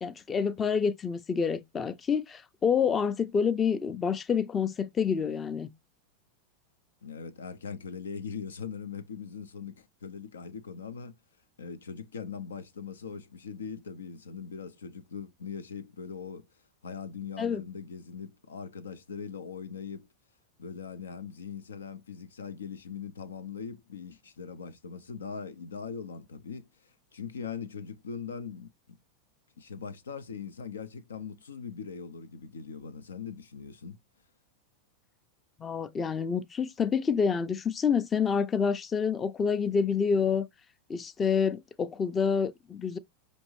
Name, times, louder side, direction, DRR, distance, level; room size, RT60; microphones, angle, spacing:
voice 1, 0.0-5.7 17.4-17.6 35.6-40.5 40.9-43.0, left 6 dB, 25° left, 0.5 m, -28 dB
voice 2, 7.0-11.2 11.6-16.5 16.8-20.1 20.6-29.0 29.6-34.0, left 6 dB, 90° left, 0.5 m, -41 dB
5.2 x 2.6 x 3.1 m
hypercardioid pair, 105°, 0 cm